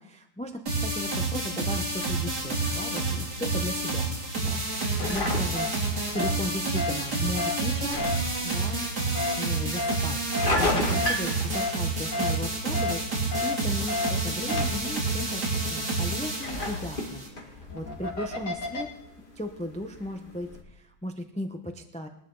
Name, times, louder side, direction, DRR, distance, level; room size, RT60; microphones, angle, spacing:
voice 1, 0.0-4.1 4.4-5.7 6.1-8.0 8.4-10.2 10.6-15.4 15.7-18.9 19.4-22.1, equal, 10° left, 5 dB, 0.4 m, -36 dB
sound 1, 0.7-17.3, right 3 dB, 55° right, 3.8 m, -29 dB
sound 2, 2.0-20.6, left 1 dB, 25° left, 2.2 m, -37 dB
sound 3, 5.5-5.7 6.2-6.3 6.8-6.9 7.4-7.5 8.0-8.1 9.1-9.3 9.8-9.9 10.3-10.5 10.9-11.1 11.5-11.7 12.1-12.3 12.7-12.9 13.3-13.5 13.9-14.1 14.5-14.6 17.5-18.8, left 2 dB, 60° left, 3.1 m, -30 dB
21.5 x 11.0 x 4.0 m, 0.80 s
omnidirectional pair, 2.1 m